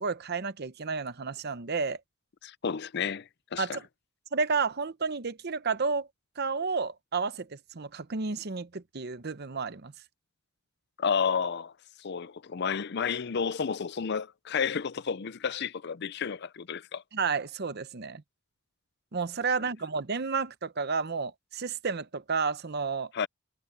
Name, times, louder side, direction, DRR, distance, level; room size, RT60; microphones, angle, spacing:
voice 1, 0.0-2.0 3.6-3.8 4.3-6.1 6.4-9.9 17.1-18.2 19.1-23.1, right 4 dB, 50° right, 0.8 m, -31 dB
voice 2, 2.4-3.8 11.0-11.7 12.0-17.0 23.1-23.3, left 6 dB, 55° left, 0.5 m, -31 dB
head